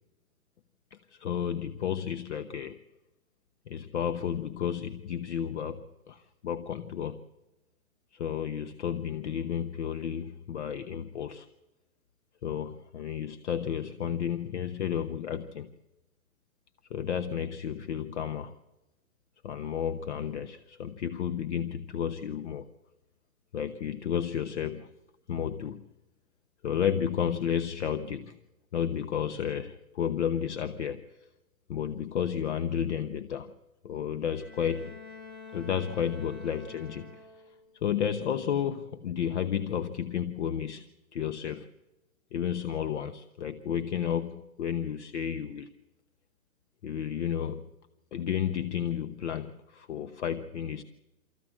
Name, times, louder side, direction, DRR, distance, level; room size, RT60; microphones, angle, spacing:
voice 1, 0.9-2.8 3.7-7.2 8.1-11.5 12.4-15.7 16.9-18.5 19.4-22.7 23.5-24.9 25.3-25.8 26.6-28.4 28.7-31.1 31.7-33.5 33.8-35.0 35.5-37.3 37.8-41.7 42.3-45.7 46.8-47.7 48.1-50.8, left 8 dB, 50° left, 10 dB, 1.0 m, -32 dB
Bowed string instrument, 34.3-37.7, left 4 dB, 70° left, 7.2 m, -47 dB
25.0 x 14.5 x 7.5 m, 1.0 s
hypercardioid pair, 145°, 44 cm